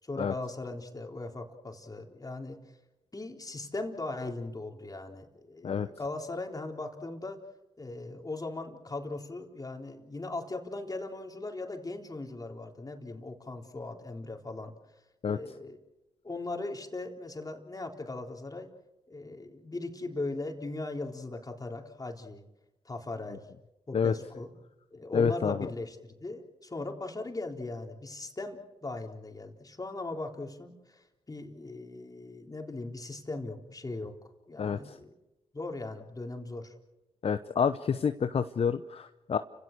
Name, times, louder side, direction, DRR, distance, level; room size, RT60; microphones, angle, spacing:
voice 1, 0.0-2.6 3.1-7.4 7.8-14.7 15.3-15.8 16.2-18.7 19.1-22.4 22.8-23.5 23.9-24.5 24.9-34.2 34.5-35.1 35.5-36.7, left 2 dB, 30° left, 3 dB, 3.9 m, -39 dB
voice 2, 25.1-25.6 34.6-34.8 37.2-39.4, left 6 dB, 55° left, 11 dB, 0.9 m, -28 dB
30.0 x 17.0 x 6.8 m, 0.98 s
supercardioid pair, 45°, 12 cm